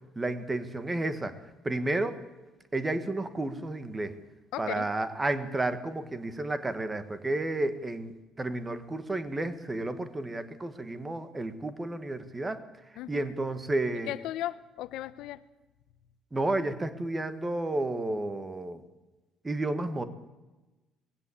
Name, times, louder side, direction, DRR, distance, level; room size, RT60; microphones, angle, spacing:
voice 1, 0.1-1.3 1.6-2.2 2.7-4.2 4.6-8.1 8.4-12.6 13.1-14.1 16.3-18.8 19.4-20.0, right 2 dB, 15° right, 11 dB, 1.5 m, -31 dB
voice 2, 4.5-4.9 13.0-13.3 14.1-15.4, left 14 dB, 80° left, 15 dB, 0.9 m, -36 dB
20.0 x 16.0 x 8.5 m, 1.1 s
cardioid pair, 155°, 0 cm